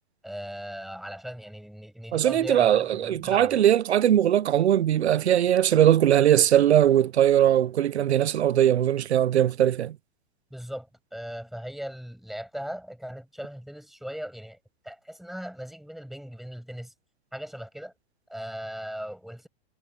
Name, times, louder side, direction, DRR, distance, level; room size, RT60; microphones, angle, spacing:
voice 1, 0.2-3.6 10.5-14.6 14.8-16.9 17.3-17.9 18.3-19.5, equal, ahead, 7.0 m, -38 dB
voice 2, 2.1-9.9, right 11 dB, 85° right, 0.9 m, -20 dB
hypercardioid pair, 125°, 32 cm